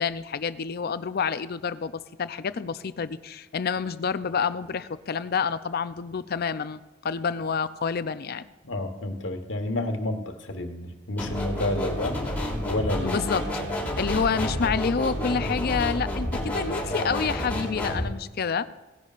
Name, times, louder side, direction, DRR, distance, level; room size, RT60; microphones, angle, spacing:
voice 1, 0.0-8.5 13.0-13.5 14.0-18.7, left 6 dB, 55° left, 14 dB, 0.5 m, -28 dB
voice 2, 8.6-12.2 12.6-13.2, left 1 dB, 70° left, 5 dB, 1.4 m, -30 dB
sound 1, 11.2-18.0, equal, 10° left, 3.1 m, -29 dB
17.5 x 11.0 x 2.5 m, 1.2 s
head